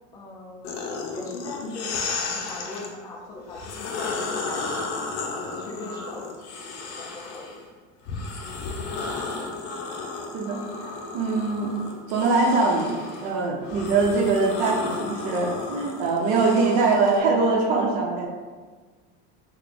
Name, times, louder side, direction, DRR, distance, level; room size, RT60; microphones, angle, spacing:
voice 1, 0.1-7.7 9.5-9.7, left 2 dB, 15° left, -3 dB, 0.3 m, -40 dB
sound 1, 0.6-2.9 3.5-7.6 8.1-17.2, left 4 dB, 60° left, 0.6 m, -33 dB
voice 2, 10.3-11.7 12.1-18.3, right 3 dB, 75° right, 0 dB, 0.8 m, -23 dB
3.4 x 2.3 x 3.8 m, 1.4 s
cardioid pair, 165°, 31 cm